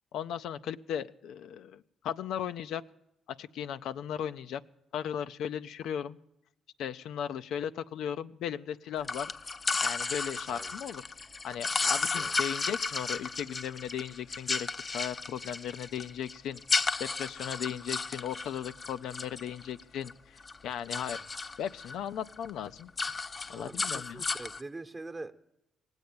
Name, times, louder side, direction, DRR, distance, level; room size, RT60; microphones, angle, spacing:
voice 1, 0.1-2.8 3.4-4.6 4.9-6.2 6.8-9.3 9.8-11.0 11.4-14.7 14.9-21.2 21.6-22.9 23.5-24.2, left 9 dB, 80° left, 11 dB, 0.4 m, -37 dB
sound 1, 9.0-20.1 20.4-22.0 22.3-22.5 22.8-24.6, left 4 dB, 30° left, 0.5 m, -34 dB
voice 2, 23.5-25.3, right 2 dB, 20° right, 8 dB, 1.0 m, -44 dB
18.0 x 8.1 x 8.4 m, 0.86 s
cardioid pair, 90°, 0 cm